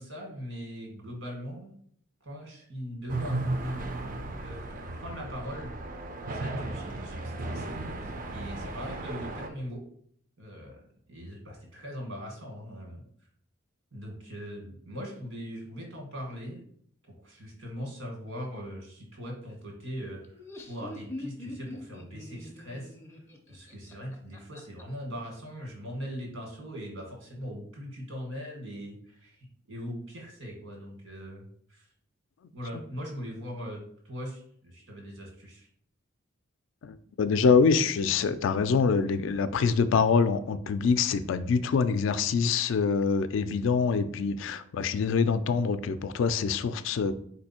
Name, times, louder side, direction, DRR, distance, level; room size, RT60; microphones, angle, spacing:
voice 1, 0.0-1.7 2.2-3.8 4.3-5.7 6.3-9.8 10.4-10.8 11.1-13.0 13.9-16.6 17.2-22.9 23.5-31.9 32.5-35.7, equal, 75° right, 0 dB, 1.6 m, -40 dB
sound 1, 3.1-9.5, right 2 dB, 45° right, 0.4 m, -35 dB
Laughter, 20.2-24.8, left 1 dB, 15° left, 0.4 m, -43 dB
voice 2, 36.8-47.1, left 5 dB, 70° left, 12 dB, 0.3 m, -25 dB
4.3 x 2.7 x 4.2 m, 0.63 s
head